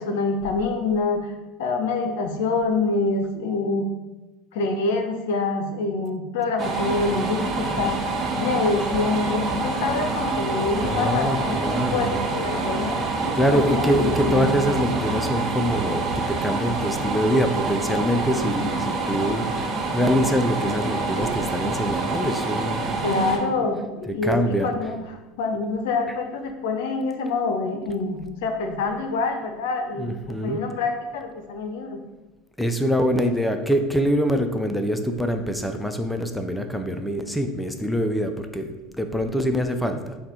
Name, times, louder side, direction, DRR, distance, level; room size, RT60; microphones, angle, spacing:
voice 1, 0.0-1.3 1.6-3.9 4.5-8.1 8.4-14.5 23.0-24.4 24.6-32.0, left 3 dB, 75° left, 5 dB, 0.5 m, -26 dB
sound 1, 6.6-23.4, right 3 dB, 40° right, 0.7 m, -26 dB
voice 2, 10.8-12.2 13.3-23.1 24.1-24.7 30.0-30.6 32.6-40.2, equal, 5° left, 6 dB, 0.4 m, -24 dB
3.9 x 2.3 x 4.2 m, 1.1 s
hypercardioid pair, 80°, 0 cm